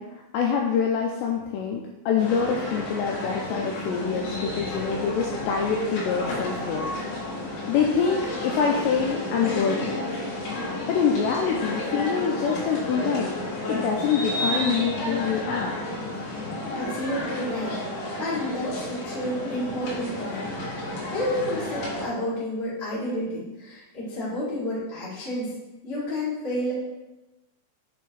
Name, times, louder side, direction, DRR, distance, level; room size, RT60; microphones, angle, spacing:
voice 1, 0.0-7.4 7.7-10.0 10.9-13.4 13.7-15.8, left 6 dB, 90° left, 1 dB, 2.5 m, -26 dB
sound 1, 2.2-22.1, left 1 dB, 65° left, 3.5 m, -31 dB
voice 2, 16.7-17.9 18.2-25.5 25.8-26.7, left 1 dB, 50° left, -8 dB, 0.7 m, -30 dB
8.2 x 3.3 x 4.7 m, 1.1 s
omnidirectional pair, 5.5 m